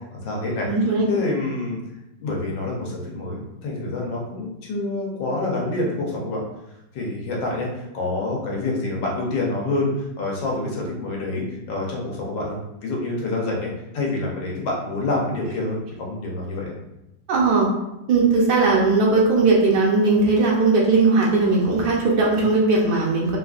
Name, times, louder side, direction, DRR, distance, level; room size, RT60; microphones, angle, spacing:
voice 1, 0.1-0.7 1.1-1.8 2.2-6.4 6.9-16.7, left 2 dB, 85° left, -2 dB, 1.5 m, -27 dB
voice 2, 0.7-1.0 17.3-17.7 18.1-23.4, right 3 dB, 70° right, -3 dB, 1.1 m, -18 dB
3.5 x 2.4 x 2.3 m, 0.90 s
omnidirectional pair, 2.0 m